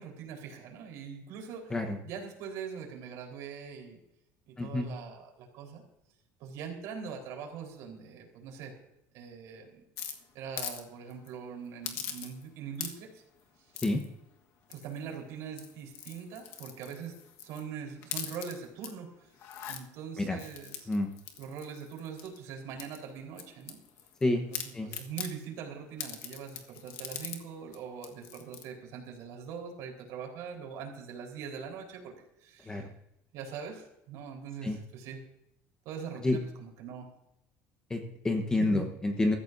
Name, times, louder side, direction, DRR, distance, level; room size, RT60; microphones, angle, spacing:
voice 1, 0.0-1.8 2.0-4.0 4.5-5.8 6.4-8.7 9.1-9.8 10.3-13.2 14.7-19.1 19.7-20.9 21.4-23.8 24.3-32.8 33.3-35.2 35.8-37.1 38.6-38.9, right 7 dB, 60° right, 1 dB, 4.1 m, -42 dB
voice 2, 4.6-4.9 13.8-14.0 20.2-20.4 20.9-21.1 24.2-24.4 24.7-24.9 32.7-32.8 34.6-34.8 36.2-36.4 37.9-39.4, left 2 dB, 10° left, 5 dB, 1.1 m, -28 dB
sound 1, 10.0-10.8 11.1-11.3 11.8-12.5 12.7-13.2 13.7-14.1 14.7-15.1 15.5-17.6 18.0-18.9 19.3-19.8 20.4-22.4 22.8-24.2 24.5-25.3 26.0-27.4 27.7-27.8 28.0-28.7, left 9 dB, 50° left, 1.4 m, -41 dB
23.5 x 14.0 x 2.7 m, 0.83 s
cardioid pair, 180°, 6 cm